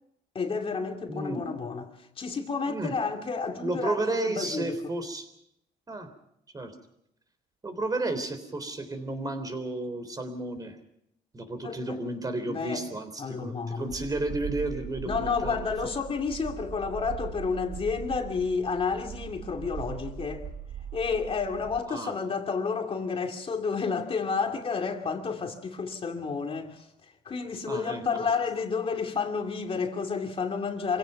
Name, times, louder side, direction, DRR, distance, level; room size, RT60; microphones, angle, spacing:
voice 1, 0.3-4.8 11.6-12.0 12.5-12.8 13.2-14.0 15.0-20.5 20.9-31.0, left 5 dB, 35° left, 2.5 m, -31 dB
voice 2, 1.1-1.4 2.7-2.9 3.6-5.3 5.9-6.1 6.5-6.7 7.6-10.8 11.3-15.6 21.9-22.1 27.7-28.3, right 2 dB, 20° right, 3.7 m, -32 dB
sound 1, 13.9-21.8, right 7 dB, 50° right, 2.3 m, -40 dB
26.0 x 17.0 x 5.9 m
cardioid pair, 110°, 17 cm